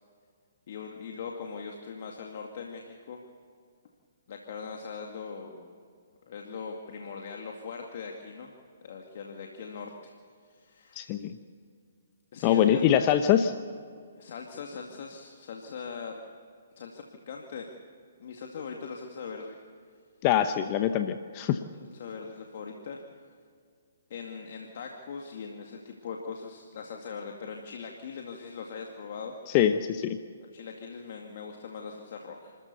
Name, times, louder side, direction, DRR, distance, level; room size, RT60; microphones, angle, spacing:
voice 1, 0.7-3.2 4.3-5.7 6.3-8.5 8.8-10.1 10.4-11.0 12.3-13.0 14.2-16.1 16.8-17.7 18.2-19.6 21.8-23.0 24.1-29.3 30.5-32.6, left 5 dB, 55° left, 1 dB, 2.2 m, -41 dB
voice 2, 11.0-11.4 12.4-13.5 20.2-21.6 29.5-30.2, left 10 dB, 35° left, 9 dB, 0.9 m, -24 dB
29.5 x 14.0 x 6.9 m, 2.2 s
hypercardioid pair, 140°, 0 cm